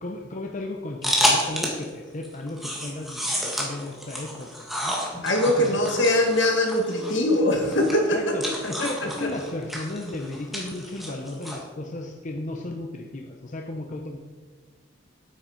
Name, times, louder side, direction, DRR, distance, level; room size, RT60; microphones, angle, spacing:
voice 1, 0.0-3.3 3.6-4.9 5.6-5.8 8.1-14.2, left 2 dB, 40° left, 2 dB, 0.8 m, -34 dB
sound 1, 1.0-1.9 2.2-11.6, equal, ahead, 1.9 m, -30 dB
voice 2, 5.2-8.5 8.8-8.9 9.2-9.3, left 1 dB, 75° left, 2 dB, 2.1 m, -22 dB
8.9 x 8.7 x 5.2 m, 1.4 s
head